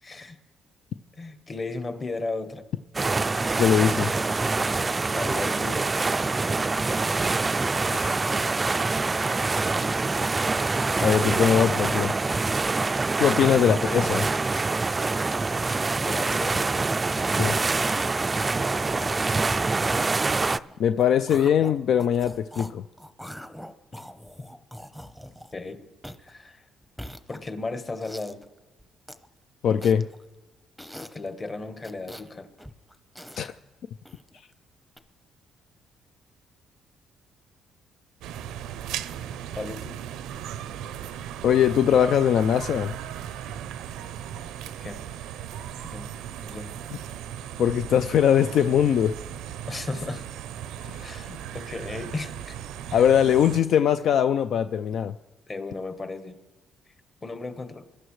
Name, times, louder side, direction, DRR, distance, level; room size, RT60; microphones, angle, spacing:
voice 1, 0.0-0.4 1.2-2.6 5.1-5.9 9.8-9.9 13.3-13.6 16.0-16.7 19.2-19.6 25.5-25.8 26.2-26.6 27.3-28.4 31.1-32.5 39.6-40.0 44.8-45.0 45.9-46.1 46.4-46.7 49.7-50.2 51.0-52.6 52.9-53.0 55.5-56.4 57.2-57.9, left 3 dB, 30° left, 8 dB, 1.3 m, -35 dB
sound 1, 2.9-20.6, right 3 dB, 25° right, 0.3 m, -25 dB
voice 2, 3.6-4.1 7.9-8.1 11.0-12.1 13.2-14.3 17.3-17.6 20.8-22.8 29.6-30.1 33.4-33.5 41.4-42.9 46.9-47.0 47.6-49.1 50.8-51.1 52.9-55.1, left 9 dB, 65° left, 11 dB, 0.4 m, -21 dB
sound 2, 16.1-16.4 16.6-17.7 18.0-18.5 18.9-22.7 23.0-25.7 26.0-26.3 26.8-27.6 28.0-28.4 28.8-29.3 29.8-30.2 30.8-31.3 31.8-32.3 32.6-33.5 34.1-34.4 35.0-35.1, equal, 5° left, 0.8 m, -42 dB
sound 3, 38.2-53.6, right 10 dB, 85° right, 0.6 m, -37 dB
22.5 x 11.5 x 3.2 m, 1.2 s
cardioid pair, 95°, 0 cm